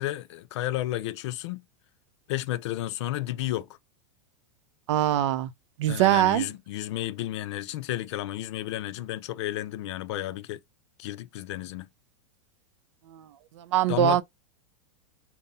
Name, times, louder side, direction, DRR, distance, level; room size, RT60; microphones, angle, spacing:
voice 1, 0.0-1.6 2.3-3.7 5.9-10.6 11.0-11.9 13.9-14.2, left 14 dB, 60° left, 0.5 m, -32 dB
voice 2, 4.9-5.5 5.8-6.5 13.6-14.2, right 12 dB, 65° right, 0.6 m, -22 dB
3.8 x 2.1 x 4.0 m
supercardioid pair, 145°, 16 cm